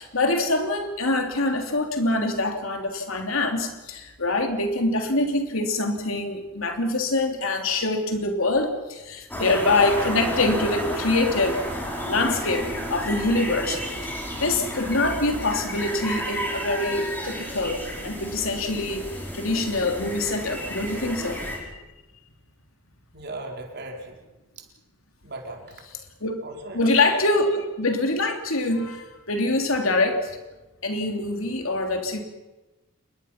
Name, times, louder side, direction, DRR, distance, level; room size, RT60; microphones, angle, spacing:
voice 1, 0.0-11.6 12.0-21.4 25.9-26.4 26.7-30.4 30.8-32.2, left 2 dB, 80° left, 4 dB, 3.1 m, -25 dB
sound 1, 9.3-21.6, equal, 10° left, 5.7 m, -32 dB
voice 2, 23.1-24.2 24.6-24.7 25.2-25.7 26.4-26.9, right 2 dB, 55° right, 1 dB, 4.3 m, -37 dB
28.0 x 22.0 x 5.9 m, 1.1 s
head